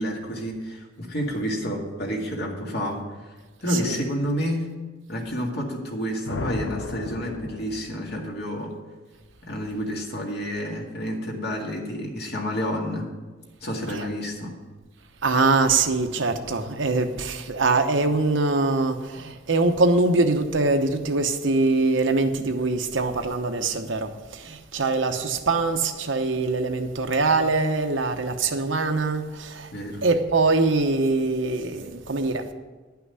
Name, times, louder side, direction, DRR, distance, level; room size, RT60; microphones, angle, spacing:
voice 1, 0.0-3.0 3.6-4.7 5.1-8.7 9.4-13.1 13.6-14.6 24.8-24.9 29.7-30.0, equal, 60° left, 2.1 m, -29 dB
voice 2, 3.7-4.1 13.9-14.1 15.2-29.7 30.0-32.4, right 3 dB, 75° right, 1.0 m, -23 dB
sound 1, 6.3-8.2, left 3 dB, 85° left, 0.6 m, -34 dB
10.5 x 5.9 x 8.2 m
head